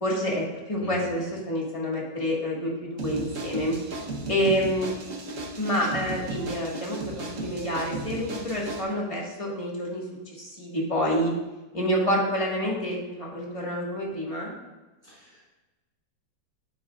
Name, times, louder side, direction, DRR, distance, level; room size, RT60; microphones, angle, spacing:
voice 1, 0.0-3.8 4.3-4.9 5.6-10.0 10.4-11.3 11.7-14.5, equal, 20° left, -4 dB, 1.7 m, -28 dB
sound 1, 3.0-8.8, right 2 dB, 50° right, 1.4 m, -35 dB
voice 2, 15.1-15.4, right 1 dB, 30° right, -8 dB, 3.5 m, -38 dB
10.0 x 8.4 x 2.4 m, 1.1 s
omnidirectional pair, 1.9 m